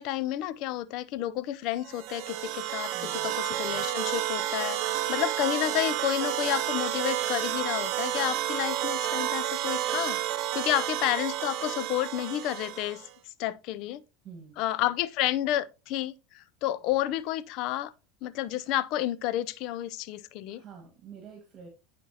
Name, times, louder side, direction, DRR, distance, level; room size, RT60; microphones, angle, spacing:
voice 1, 0.0-10.2 10.5-14.0 14.6-17.9 18.2-20.6, left 13 dB, 60° left, 0.5 m, -30 dB
sound 1, 1.8-13.1, right 13 dB, 55° right, 0.6 m, -31 dB
voice 2, 2.9-3.3 14.2-14.6 20.5-21.7, right 6 dB, 40° right, 1.7 m, -47 dB
10.0 x 4.3 x 2.8 m
supercardioid pair, 110°, 0 cm